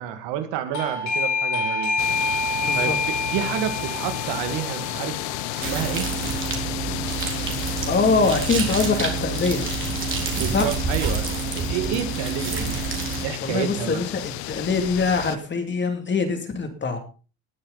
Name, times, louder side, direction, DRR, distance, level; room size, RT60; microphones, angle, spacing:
voice 1, 0.0-2.0 2.7-5.2 5.5-6.1 10.3-12.8 13.2-14.0, right 10 dB, 75° right, 8 dB, 2.4 m, -29 dB
Doorbell, 0.7-7.2, left 3 dB, 40° left, 3.4 m, -28 dB
sound 1, 2.0-15.4, left 18 dB, 85° left, 0.9 m, -32 dB
voice 2, 2.6-3.0 7.9-9.6 10.5-10.7 13.4-17.0, left 4 dB, 25° left, 6 dB, 2.8 m, -23 dB
sound 2, 5.6-13.3, right 6 dB, 30° right, 3.9 m, -28 dB
19.0 x 9.4 x 4.1 m, 0.36 s
cardioid pair, 140°, 43 cm